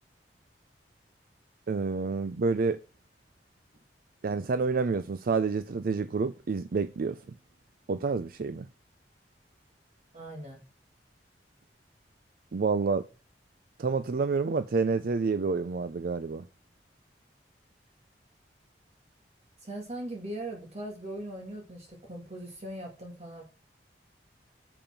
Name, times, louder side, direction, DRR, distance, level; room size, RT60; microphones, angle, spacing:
voice 1, 1.7-2.8 4.2-7.2 7.9-8.7 12.5-13.0 13.8-16.5, right 4 dB, 55° right, 0.4 m, -28 dB
voice 2, 10.1-10.6 19.6-23.4, right 1 dB, 40° right, 1.8 m, -40 dB
7.0 x 5.3 x 5.8 m
head